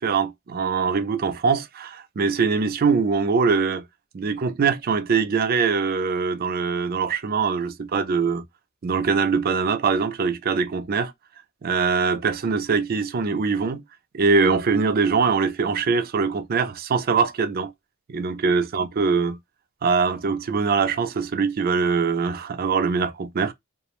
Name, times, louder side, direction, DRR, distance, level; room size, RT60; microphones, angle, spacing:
voice 1, 0.0-3.8 4.1-8.4 8.8-11.1 11.6-13.8 14.1-17.7 18.1-19.4 19.8-23.5, right 5 dB, 45° right, 0.4 m, -22 dB
2.4 x 2.0 x 2.9 m
head